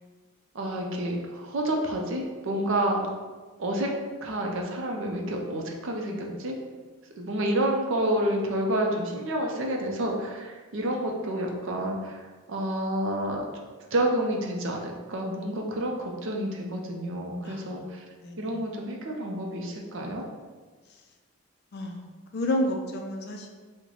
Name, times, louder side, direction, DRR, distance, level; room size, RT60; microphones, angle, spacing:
voice 1, 0.5-3.1 3.6-3.9 4.2-6.5 7.2-13.5 13.9-18.0 18.4-20.2, right 1 dB, 60° right, 1 dB, 0.5 m, -29 dB
voice 2, 17.4-17.8 18.2-18.5 21.7-22.0 22.3-23.5, left 1 dB, 50° left, 3 dB, 0.4 m, -30 dB
3.1 x 2.1 x 3.8 m, 1.4 s
head